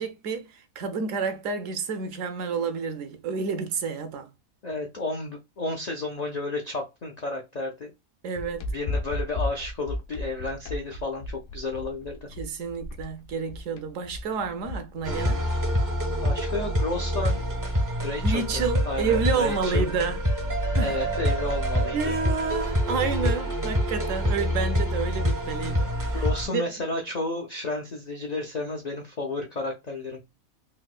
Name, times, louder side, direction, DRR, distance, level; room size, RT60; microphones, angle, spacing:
voice 1, 0.0-4.3 8.2-8.7 12.4-15.4 18.2-20.2 20.7-21.0 21.9-26.6, right 5 dB, 70° right, 0.9 m, -29 dB
voice 2, 4.6-7.9 8.7-12.3 16.2-17.5 18.0-19.9 20.8-22.2 26.1-30.2, left 2 dB, 90° left, 0.3 m, -32 dB
sound 1, 8.3-15.2, left 2 dB, 70° left, 0.8 m, -34 dB
sound 2, 15.0-26.5, equal, 25° right, 0.4 m, -26 dB
4.2 x 2.1 x 2.3 m
omnidirectional pair, 1.5 m